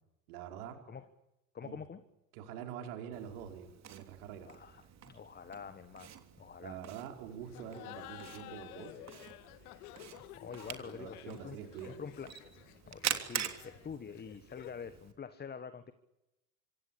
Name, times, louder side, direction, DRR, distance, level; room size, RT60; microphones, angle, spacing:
voice 1, 0.3-0.8 1.6-1.8 2.3-4.5 6.6-9.0 10.8-12.0, right 9 dB, 60° right, 5 dB, 5.1 m, -45 dB
voice 2, 1.5-2.0 4.4-6.8 10.3-12.4 12.8-15.9, left 6 dB, 20° left, 12 dB, 1.4 m, -46 dB
Camera, 3.1-15.1, right 9 dB, 30° right, 3.3 m, -45 dB
Laughter, 7.5-14.9, left 15 dB, 60° left, 1.8 m, -52 dB
26.0 x 26.0 x 8.6 m, 0.94 s
figure-of-eight pair, 80°, 50 cm